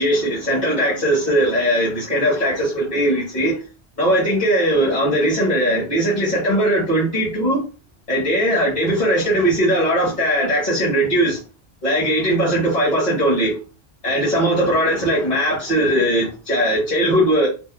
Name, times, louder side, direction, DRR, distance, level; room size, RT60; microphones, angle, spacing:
voice 1, 0.0-3.6 4.0-7.6 8.1-11.4 11.8-13.5 14.0-17.5, equal, 45° left, 1.3 m, -19 dB
3.4 x 2.1 x 2.2 m
omnidirectional pair, 1.1 m